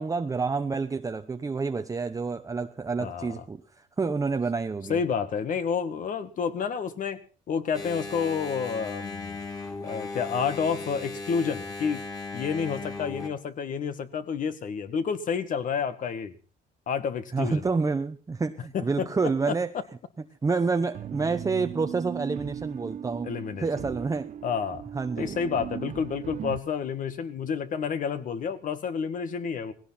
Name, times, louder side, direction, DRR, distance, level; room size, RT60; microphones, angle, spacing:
voice 1, 0.0-3.6 4.0-5.0 17.3-19.7 20.4-23.3 23.6-24.3 24.9-25.4, right 4 dB, 20° right, 7 dB, 0.9 m, -28 dB
voice 2, 4.9-7.2 7.5-9.4 9.8-12.0 12.3-16.4 16.9-17.6 18.7-19.1 19.5-19.6 23.2-23.9 24.4-24.8 25.2-29.7, left 6 dB, 50° left, 11 dB, 2.0 m, -29 dB
Engine, 7.7-13.3, left 3 dB, 20° left, 4.0 m, -37 dB
sound 1, 20.9-26.6, right 9 dB, 45° right, 0.8 m, -38 dB
18.5 x 17.0 x 4.3 m, 0.38 s
cardioid pair, 110°, 17 cm